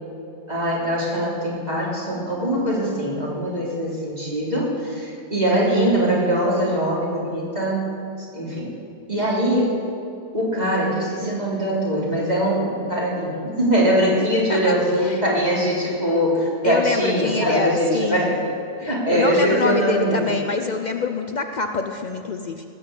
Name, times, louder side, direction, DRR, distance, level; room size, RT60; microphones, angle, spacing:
voice 1, 0.5-7.9 8.3-8.7 9.1-9.7 10.3-18.4 18.9-20.2, equal, 25° right, -5 dB, 3.7 m, -22 dB
voice 2, 14.2-15.2 15.5-15.6 16.6-18.4 18.8-22.6, left 4 dB, 80° left, 5 dB, 0.4 m, -26 dB
18.5 x 7.4 x 8.1 m, 2.5 s
omnidirectional pair, 1.6 m